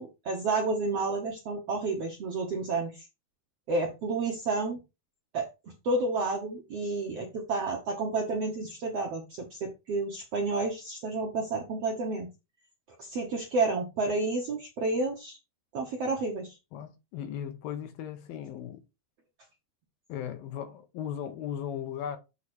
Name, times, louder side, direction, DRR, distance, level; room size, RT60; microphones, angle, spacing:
voice 1, 0.0-3.0 3.7-4.8 5.3-5.5 5.8-12.3 13.0-15.4 15.7-16.5, right 3 dB, 65° right, 1.5 m, -30 dB
voice 2, 16.7-18.8 20.1-22.2, left 9 dB, 75° left, 2.5 m, -37 dB
8.3 x 3.0 x 6.2 m
omnidirectional pair, 4.6 m